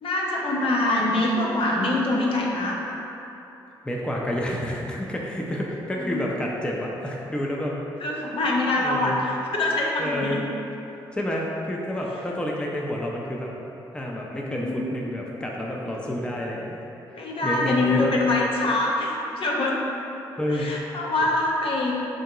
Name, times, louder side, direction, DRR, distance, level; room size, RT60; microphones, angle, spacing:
voice 1, 0.0-3.0 5.9-6.2 8.0-10.4 14.4-14.7 17.2-19.8 20.5-21.9, left 2 dB, 50° left, -3 dB, 0.6 m, -24 dB
voice 2, 3.8-7.8 8.8-9.2 10.0-10.4 11.1-13.5 13.9-16.8 17.4-18.1 20.4-20.7, equal, 10° left, -2 dB, 0.5 m, -29 dB
3.8 x 3.5 x 2.3 m, 3.0 s
hypercardioid pair, 45°, 12 cm